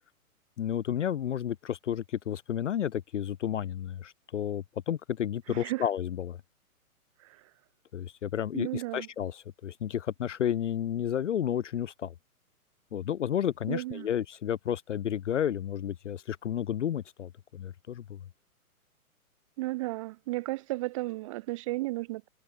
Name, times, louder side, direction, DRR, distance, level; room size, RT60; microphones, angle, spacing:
voice 1, 0.6-6.4 7.9-12.1 12.9-18.2, left 10 dB, 55° left, 0.5 m, -32 dB
voice 2, 5.5-5.9 7.2-7.4 8.5-9.1 13.7-14.1 19.6-22.3, right 20 dB, 20° right, 0.8 m, -34 dB
open air
figure-of-eight pair, 125°, 43 cm